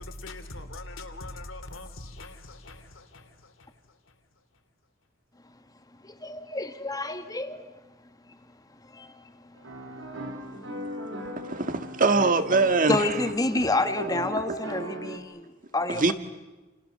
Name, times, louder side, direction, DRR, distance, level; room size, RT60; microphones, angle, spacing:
voice 1, 0.0-3.3, left 2 dB, 80° left, 3.1 m, -41 dB
voice 2, 6.0-7.6 8.9-9.3 12.9-16.1, left 2 dB, 20° left, 1.6 m, -29 dB
sound 1, 9.6-15.2, right 1 dB, 85° right, 4.5 m, -38 dB
voice 3, 11.4-13.2 13.6-13.7 15.9-16.1, right 3 dB, 45° right, 1.8 m, -23 dB
29.5 x 29.0 x 6.8 m
head